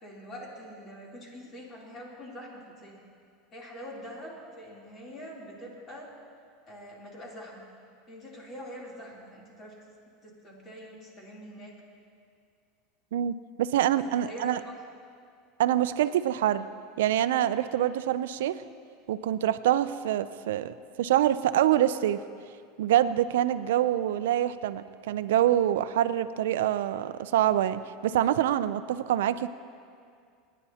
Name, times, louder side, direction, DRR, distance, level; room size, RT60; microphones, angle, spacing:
voice 1, 0.0-3.0 3.5-6.1 6.7-7.7 8.1-9.8 10.2-11.8 13.9-14.7, equal, 30° left, -3 dB, 3.1 m, -44 dB
voice 2, 13.1-14.6 15.6-16.7 17.0-18.6 19.1-22.2 22.8-29.5, right 11 dB, 90° right, 13 dB, 0.4 m, -25 dB
27.5 x 10.0 x 2.8 m, 2.3 s
supercardioid pair, 130°, 0 cm